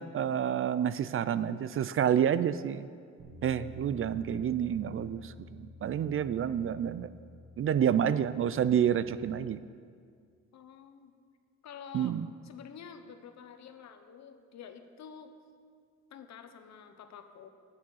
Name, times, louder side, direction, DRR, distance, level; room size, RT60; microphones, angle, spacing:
voice 1, 0.0-2.9 3.4-7.1 7.6-9.6 11.9-12.3, right 9 dB, 45° right, 15 dB, 0.4 m, -29 dB
Bass guitar, 3.2-9.4, left 2 dB, 75° right, 2.1 m, -50 dB
voice 2, 10.5-11.1 11.6-12.2 12.4-15.3 16.1-17.5, left 7 dB, 65° left, 8 dB, 1.0 m, -49 dB
9.6 x 8.7 x 6.3 m, 2.1 s
cardioid pair, 90°, 30 cm